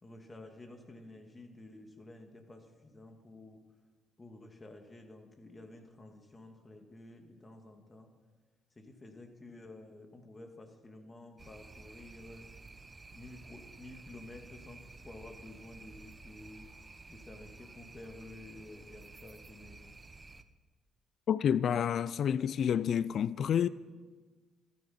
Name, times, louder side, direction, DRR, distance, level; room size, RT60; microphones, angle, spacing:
voice 1, 0.0-3.6 4.2-8.1 8.8-12.5 13.1-16.7 17.1-20.0, left 2 dB, 30° left, 2.5 m, -51 dB
sound 1, 11.4-20.4, right 3 dB, 30° right, 1.0 m, -53 dB
voice 2, 21.3-23.7, left 8 dB, 65° left, 0.4 m, -29 dB
14.0 x 13.5 x 5.9 m
hypercardioid pair, 50°, 0 cm